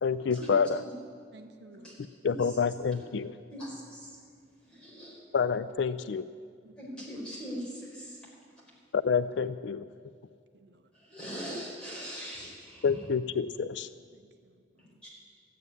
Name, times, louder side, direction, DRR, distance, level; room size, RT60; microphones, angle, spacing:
voice 1, 0.0-0.8 2.2-3.4 5.3-6.3 8.9-9.9 12.8-13.9, left 6 dB, 70° left, 14 dB, 0.4 m, -28 dB
voice 2, 1.3-2.0 6.6-6.8 7.2-7.4 10.5-10.9 14.1-15.0, right 2 dB, 65° right, 7 dB, 0.8 m, -55 dB
voice 3, 2.2-2.6 3.5-4.1 4.7-5.2 6.8-8.2 10.9-13.0, equal, 5° left, -7 dB, 5.1 m, -41 dB
13.5 x 9.5 x 9.7 m, 2.2 s
head